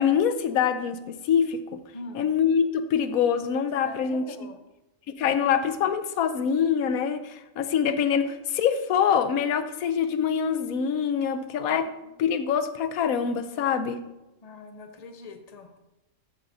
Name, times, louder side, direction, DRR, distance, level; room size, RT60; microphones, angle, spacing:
voice 1, 0.0-1.8 2.1-4.2 5.1-11.9 12.2-14.0, left 7 dB, 85° left, 10 dB, 1.1 m, -25 dB
voice 2, 1.9-2.3 3.8-4.6 11.7-11.8 14.4-15.8, left 3 dB, 35° left, 5 dB, 0.7 m, -43 dB
13.5 x 6.4 x 2.7 m, 0.98 s
omnidirectional pair, 1.4 m